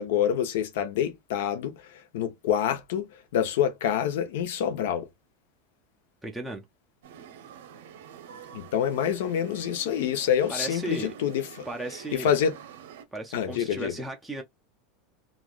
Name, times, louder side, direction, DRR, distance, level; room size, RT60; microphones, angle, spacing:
voice 1, 0.0-5.1 8.5-11.7 12.1-12.5 13.3-13.9, left 9 dB, 70° left, 0.7 m, -27 dB
voice 2, 6.2-6.6 10.0-10.2 10.5-11.1 11.7-12.4 13.1-14.4, right 2 dB, ahead, 0.4 m, -36 dB
sound 1, 7.0-13.1, right 8 dB, 85° right, 0.7 m, -47 dB
3.0 x 2.5 x 2.4 m
supercardioid pair, 180°, 0 cm